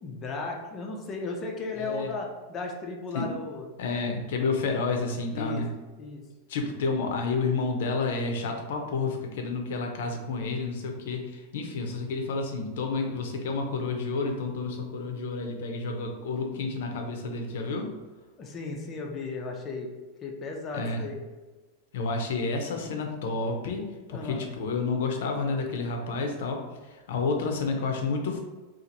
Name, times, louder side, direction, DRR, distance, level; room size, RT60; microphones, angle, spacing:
voice 1, 0.0-3.7 5.3-5.6 6.0-6.2 18.4-19.9 20.2-21.2 24.1-24.5, left 3 dB, 25° left, 0 dB, 0.5 m, -35 dB
voice 2, 1.8-2.1 3.1-3.3 3.8-5.7 6.5-17.9 20.7-21.0 21.9-28.4, left 3 dB, 70° left, 3 dB, 0.6 m, -30 dB
2.8 x 2.5 x 3.8 m, 1.3 s
supercardioid pair, 160°, 0 cm